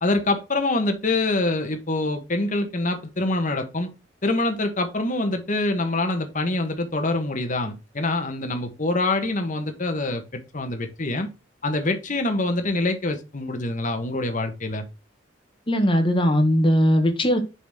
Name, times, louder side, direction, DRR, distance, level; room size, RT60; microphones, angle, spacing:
voice 1, 0.0-3.9 4.2-11.3 11.6-14.8, left 2 dB, 45° left, 1.5 m, -25 dB
voice 2, 15.7-17.4, equal, 30° left, 1.6 m, -19 dB
7.1 x 4.1 x 6.2 m
head